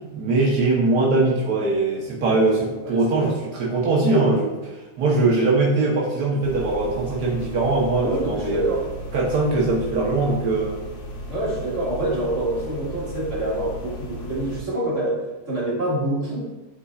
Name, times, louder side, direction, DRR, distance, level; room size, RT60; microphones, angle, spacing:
voice 1, 0.1-4.7 5.0-8.6 9.1-10.8, right 2 dB, 85° right, -4 dB, 1.6 m, -21 dB
voice 2, 2.8-3.4 8.0-8.8 11.3-15.2 15.5-16.4, right 1 dB, 50° right, -7 dB, 2.4 m, -26 dB
sound 1, 6.4-14.6, equal, 55° left, 1.2 m, -36 dB
10.5 x 4.1 x 2.4 m, 1.1 s
omnidirectional pair, 1.7 m